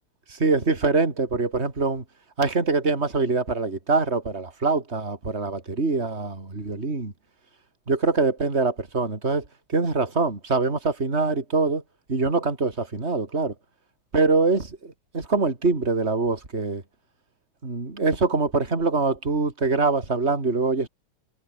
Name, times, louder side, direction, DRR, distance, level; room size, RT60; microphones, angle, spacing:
voice 1, 0.3-2.0 2.4-7.1 7.9-9.4 9.7-11.8 12.1-13.5 14.1-16.8 17.6-20.9, right 3 dB, 30° right, 3.9 m, -24 dB
omnidirectional pair, 2.2 m